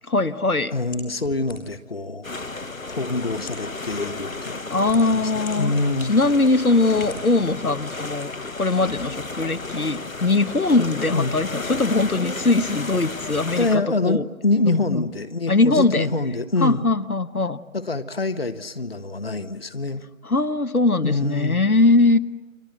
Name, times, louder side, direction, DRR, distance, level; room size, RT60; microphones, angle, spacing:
voice 1, 0.1-0.7 4.7-5.7 6.1-14.2 14.6-15.1 15.5-16.1 16.6-17.6 20.2-22.2, left 3 dB, 85° left, 10 dB, 1.2 m, -21 dB
voice 2, 0.7-2.3 2.9-6.1 11.1-11.3 13.6-16.9 17.7-20.0 21.0-21.6, left 2 dB, 45° left, 11 dB, 1.1 m, -25 dB
sound 1, 0.9-1.9 2.7-2.8 3.3-3.7 4.5-5.5 6.1-6.2 6.9-7.2, left 2 dB, ahead, 1.3 m, -40 dB
sound 2, 2.2-13.8, left 3 dB, 70° left, 1.4 m, -33 dB
30.0 x 24.0 x 8.1 m, 1.3 s
figure-of-eight pair, 160°, 42 cm